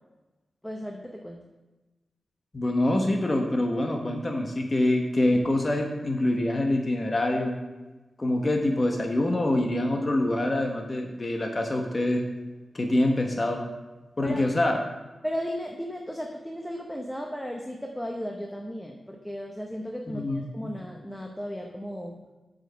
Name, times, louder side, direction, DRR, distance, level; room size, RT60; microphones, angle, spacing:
voice 1, 0.6-1.4 14.2-14.4 15.2-22.2, equal, 5° left, 1 dB, 0.8 m, -35 dB
voice 2, 2.5-7.5 8.2-12.2 12.7-13.6 14.2-14.8 20.1-20.7, left 1 dB, 35° left, 2 dB, 1.0 m, -25 dB
7.4 x 5.2 x 6.1 m, 1.1 s
cardioid pair, 70°, 0 cm